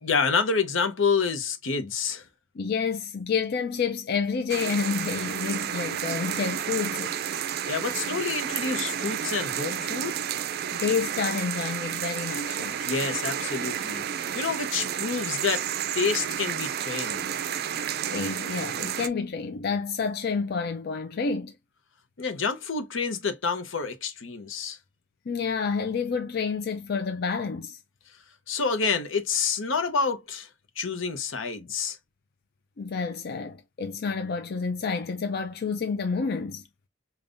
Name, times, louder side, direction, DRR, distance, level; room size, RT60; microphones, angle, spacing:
voice 1, 0.0-2.2 7.7-10.2 12.8-14.0 14.3-15.6 15.9-17.3 22.2-24.8 28.5-30.5 30.8-32.0, left 5 dB, 85° left, 0.8 m, -28 dB
voice 2, 2.6-7.2 10.7-12.8 18.1-21.5 25.3-27.8 32.8-36.6, left 5 dB, 55° left, 0.4 m, -29 dB
sound 1, 4.5-19.1, right 9 dB, 55° right, 0.4 m, -31 dB
5.2 x 2.3 x 2.5 m
head